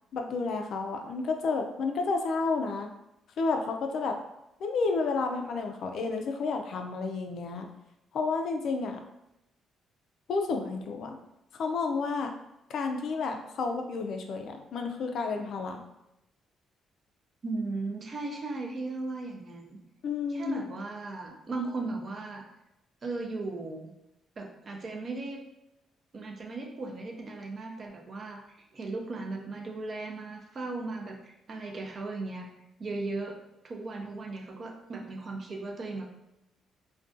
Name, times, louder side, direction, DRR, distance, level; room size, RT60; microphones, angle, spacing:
voice 1, 0.1-2.9 3.4-4.2 4.6-7.7 8.1-9.0 10.3-11.2 11.5-12.3 12.7-15.8 20.0-20.6, left 4 dB, 65° left, 4 dB, 0.3 m, -31 dB
voice 2, 17.4-19.8 20.3-22.4 23.0-23.9 24.4-25.4 26.1-28.4 28.7-32.5 32.8-33.3 33.6-36.1, right 3 dB, 45° right, 2 dB, 0.5 m, -37 dB
2.4 x 2.2 x 2.5 m, 0.89 s
cardioid pair, 90°, 0 cm